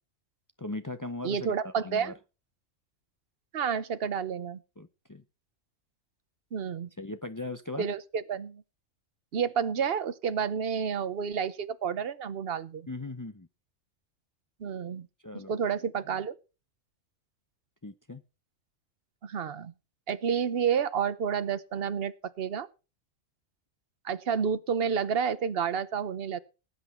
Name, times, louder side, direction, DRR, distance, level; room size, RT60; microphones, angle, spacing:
voice 1, 0.6-2.1 4.8-5.2 7.0-7.9 12.9-13.5 15.2-15.5 17.8-18.2, left 2 dB, 30° left, 0.3 m, -38 dB
voice 2, 1.2-2.1 3.5-4.6 6.5-6.9 7.8-8.6 9.3-12.9 14.6-15.1 15.3-16.4 19.2-19.7 20.1-22.7 24.0-26.4, right 7 dB, 50° right, 1.0 m, -30 dB
18.5 x 8.2 x 4.3 m
omnidirectional pair, 1.4 m